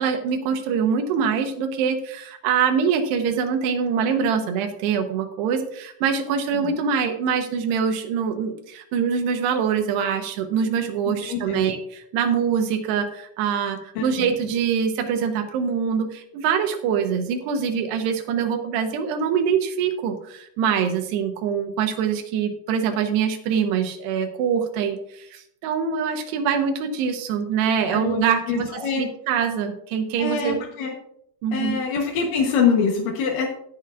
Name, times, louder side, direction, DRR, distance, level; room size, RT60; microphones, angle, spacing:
voice 1, 0.0-30.6 31.4-31.8, right 7 dB, 75° right, 6 dB, 2.9 m, -24 dB
voice 2, 11.1-11.6 14.0-14.3 27.9-29.0 30.2-30.9 31.5-33.5, left 6 dB, 70° left, 0 dB, 2.1 m, -25 dB
17.0 x 7.6 x 2.5 m, 0.73 s
omnidirectional pair, 5.2 m